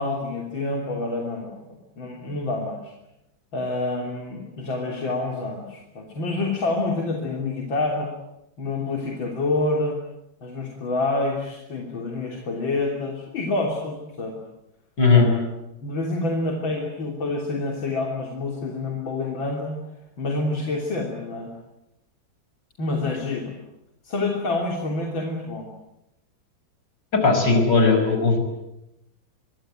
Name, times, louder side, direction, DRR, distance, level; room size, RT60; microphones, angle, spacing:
voice 1, 0.0-2.9 3.5-8.1 8.6-10.0 10.4-14.4 15.1-15.4 15.8-19.7 20.2-21.5 22.8-23.6 24.0-25.7, left 2 dB, 80° left, 1 dB, 3.9 m, -27 dB
voice 2, 27.1-28.4, left 4 dB, 65° left, 6 dB, 6.1 m, -17 dB
25.0 x 23.0 x 9.0 m, 0.87 s
omnidirectional pair, 2.1 m